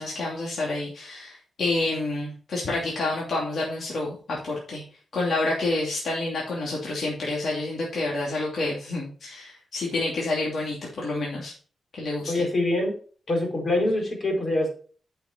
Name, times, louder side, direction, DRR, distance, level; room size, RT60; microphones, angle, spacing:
voice 1, 0.0-4.8 5.1-11.5 11.9-12.5, left 2 dB, 60° left, -4 dB, 2.8 m, -28 dB
voice 2, 12.3-12.9 13.3-14.7, left 1 dB, 40° left, 1 dB, 4.1 m, -24 dB
8.7 x 6.6 x 4.4 m, 0.41 s
wide cardioid pair, 120°, 0 cm